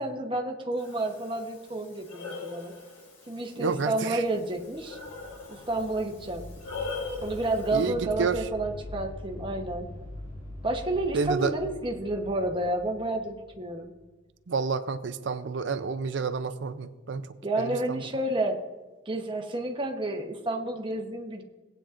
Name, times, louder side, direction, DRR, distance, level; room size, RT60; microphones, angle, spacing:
voice 1, 0.0-2.7 3.3-5.0 5.5-6.4 7.2-9.9 10.6-13.9 17.4-18.6 19.1-21.4, right 2 dB, 25° right, 3 dB, 1.0 m, -30 dB
Breathing, 0.8-7.9, left 4 dB, 80° left, 3.6 m, -41 dB
voice 2, 3.6-4.2 7.7-8.4 11.1-11.5 14.5-17.3 17.6-18.0, right 5 dB, 65° right, 12 dB, 0.5 m, -29 dB
sound 1, 4.4-14.1, left 1 dB, 25° left, 1.8 m, -43 dB
18.0 x 8.8 x 2.5 m, 1.2 s
head